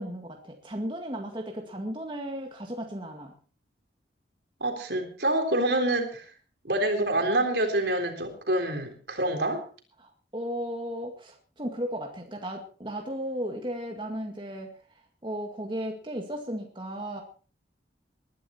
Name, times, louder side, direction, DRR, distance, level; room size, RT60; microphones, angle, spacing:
voice 1, 0.0-3.3 10.0-17.2, equal, 25° right, 2 dB, 2.0 m, -35 dB
voice 2, 4.6-6.3 6.6-9.6, right 1 dB, 65° right, 4 dB, 3.7 m, -26 dB
20.5 x 12.0 x 4.4 m, 0.39 s
head